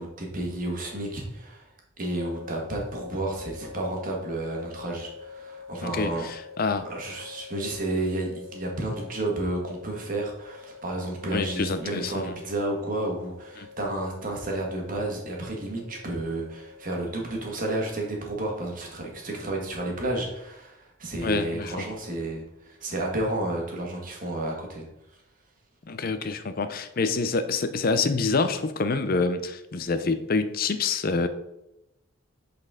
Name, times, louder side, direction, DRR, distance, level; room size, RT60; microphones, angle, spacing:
voice 1, 0.0-1.7 2.0-6.2 6.8-24.9, right 1 dB, 40° right, 0 dB, 1.5 m, -31 dB
sound 1, 2.1-17.7, left 5 dB, 65° right, 0.9 m, -46 dB
voice 2, 5.8-6.8 11.3-12.3 13.6-13.7 21.2-21.9 25.9-31.3, left 4 dB, 45° left, 11 dB, 0.5 m, -27 dB
7.7 x 4.2 x 3.7 m, 0.88 s
head